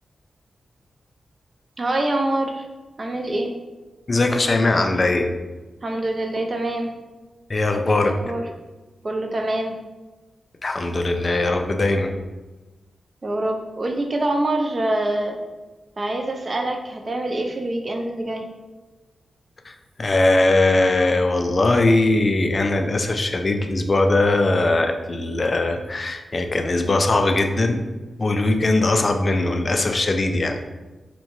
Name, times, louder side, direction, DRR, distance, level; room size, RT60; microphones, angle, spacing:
voice 1, 1.8-2.6 3.0-3.5 5.8-6.9 7.9-8.5 9.0-9.7 13.2-15.4 16.0-18.4, right 1 dB, 40° right, 3 dB, 0.4 m, -25 dB
voice 2, 4.1-5.3 7.5-8.2 10.6-12.1 19.7-19.8 20.0-27.8 28.2-30.6, left 2 dB, 45° left, 5 dB, 0.3 m, -20 dB
2.6 x 2.1 x 3.0 m, 1.2 s
cardioid pair, 70°, 0 cm